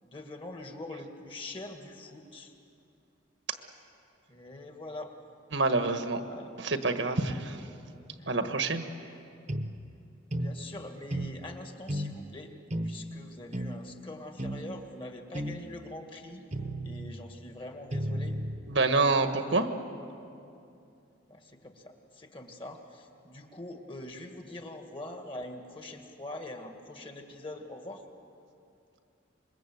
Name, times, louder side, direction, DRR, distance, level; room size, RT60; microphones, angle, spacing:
voice 1, 0.0-2.5 4.3-5.1 6.1-6.5 7.5-7.6 8.2-8.5 9.0-9.2 10.4-12.5 12.8-16.5 16.8-18.4 21.3-28.0, left 1 dB, 25° left, 4 dB, 2.0 m, -44 dB
voice 2, 5.5-6.2 6.6-7.6 8.3-8.8 18.7-19.7, right 3 dB, 70° right, 7 dB, 1.5 m, -27 dB
sound 1, 9.5-9.7 10.3-10.6 11.1-11.4 11.9-12.2 12.7-12.9 13.5-13.7 14.4-14.6 15.3-15.6 16.5-17.2 17.9-18.6, right 1 dB, 35° right, 1.1 m, -33 dB
26.0 x 22.0 x 7.9 m, 2.6 s
head